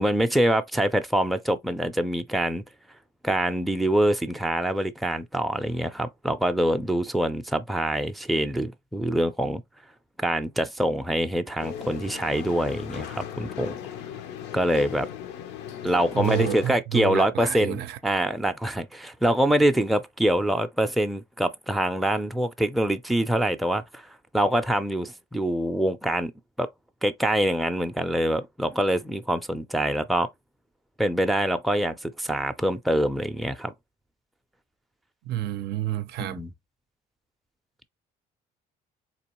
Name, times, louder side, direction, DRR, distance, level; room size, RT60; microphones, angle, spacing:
voice 1, 0.0-2.6 3.2-9.6 10.2-13.8 14.5-15.1 15.8-26.3 26.6-26.7 27.0-30.3 31.0-33.7 36.2-36.5, right 1 dB, ahead, 0.4 m, -25 dB
sound 1, 11.6-16.7, left 9 dB, 85° left, 0.6 m, -37 dB
voice 2, 16.1-18.0 35.3-36.4, right 13 dB, 75° right, 0.5 m, -29 dB
4.1 x 3.0 x 2.9 m
cardioid pair, 110°, 17 cm